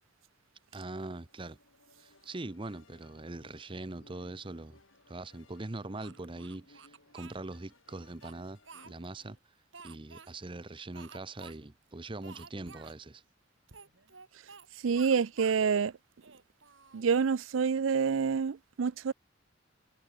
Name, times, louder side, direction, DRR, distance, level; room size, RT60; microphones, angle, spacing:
voice 1, 0.7-1.6 2.0-4.8 5.1-8.6 8.8-9.4 9.8-13.2, right 2 dB, 25° right, 0.8 m, -42 dB
sound 1, 1.1-9.4, left 2 dB, 90° left, 5.4 m, -63 dB
Speech, 6.0-7.4 8.0-9.2 9.7-10.3 10.9-11.6 11.8-11.9 12.2-13.0 13.7-14.7 14.9-15.6 16.1-17.5, right 5 dB, 75° right, 3.4 m, -52 dB
voice 2, 14.8-15.9 16.9-19.1, right 6 dB, 90° right, 0.5 m, -27 dB
head